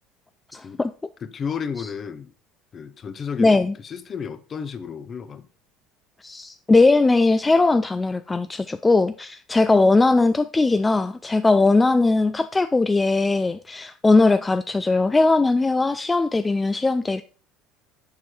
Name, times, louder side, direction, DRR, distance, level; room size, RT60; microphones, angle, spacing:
voice 1, 0.5-0.9 3.4-3.7 6.2-17.2, left 3 dB, 15° left, 0.3 m, -19 dB
voice 2, 1.2-2.3 2.7-5.5, left 6 dB, 40° left, 0.7 m, -33 dB
7.2 x 4.6 x 4.3 m
supercardioid pair, 90°, 0 cm